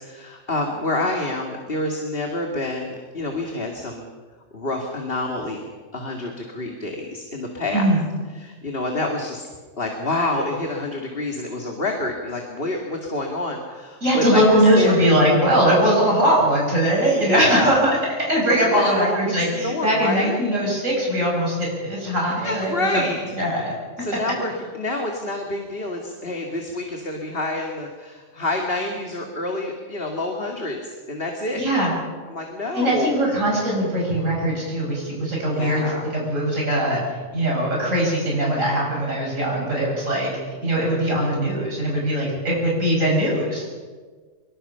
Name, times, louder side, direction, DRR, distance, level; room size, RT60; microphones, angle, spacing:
voice 1, 0.0-4.1 4.5-7.9 8.4-9.5 9.8-14.4 14.8-15.0 17.2-17.8 18.6-20.4 22.4-23.2 24.0-31.6 32.3-33.2 35.5-36.1, left 2 dB, 50° left, 1 dB, 2.3 m, -28 dB
voice 2, 14.0-22.9 23.4-23.7 24.2-24.3 31.6-31.9 32.7-35.8 36.1-37.0 37.3-40.3 40.6-43.7, right 1 dB, 85° right, -3 dB, 6.4 m, -20 dB
24.0 x 23.0 x 5.7 m, 1.5 s
omnidirectional pair, 1.3 m